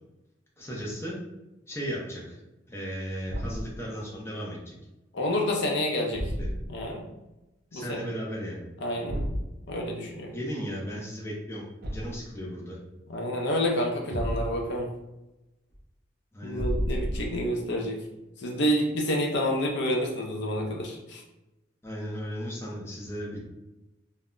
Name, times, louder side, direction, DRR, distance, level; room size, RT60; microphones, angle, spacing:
voice 1, 0.6-1.2 1.7-2.4 2.7-4.8 6.4-6.5 7.7-8.7 10.3-11.6 11.9-12.8 16.3-16.7 21.8-23.4, equal, 15° left, -4 dB, 0.5 m, -35 dB
Thump thud, 3.2-3.8 6.1-6.8 9.1-9.5 11.8-12.3 14.1-14.7 16.5-17.5, equal, 55° right, 0.5 m, -31 dB
voice 2, 5.1-6.3 6.7-7.0 7.7-8.0 8.8-9.2 9.7-10.3 13.1-14.9 16.4-18.0 18.4-21.2, equal, 65° left, 1 dB, 0.5 m, -28 dB
2.1 x 2.0 x 3.6 m, 0.97 s
head